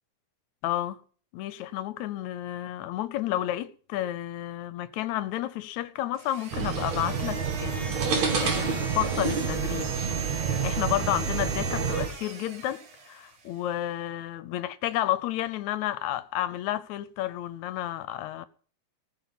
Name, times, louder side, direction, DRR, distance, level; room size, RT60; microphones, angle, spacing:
voice 1, 0.6-1.0 1.3-9.9 10.6-18.5, left 13 dB, 80° left, 2.0 m, -31 dB
sound 1, 6.1-13.5, right 5 dB, 50° right, 2.2 m, -39 dB
sound 2, 6.5-12.1, right 6 dB, 70° right, 3.3 m, -28 dB
19.0 x 6.6 x 5.5 m
omnidirectional pair, 3.4 m